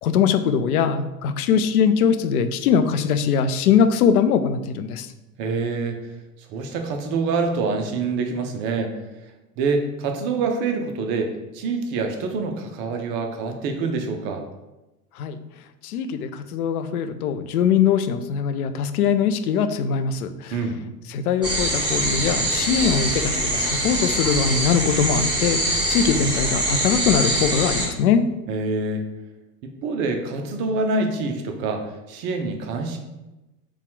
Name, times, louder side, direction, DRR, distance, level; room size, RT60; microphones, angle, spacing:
voice 1, 0.0-5.1 15.2-15.4 15.8-20.6 21.1-28.2, left 7 dB, 65° left, 10 dB, 0.5 m, -21 dB
voice 2, 5.4-6.0 6.5-8.9 9.6-14.4 20.5-20.8 28.5-29.0 29.6-33.0, right 4 dB, 25° right, 4 dB, 0.4 m, -26 dB
sound 1, 21.4-27.9, right 1 dB, 10° right, 1.2 m, -23 dB
4.1 x 2.3 x 4.5 m, 1.0 s
figure-of-eight pair, 80°, 47 cm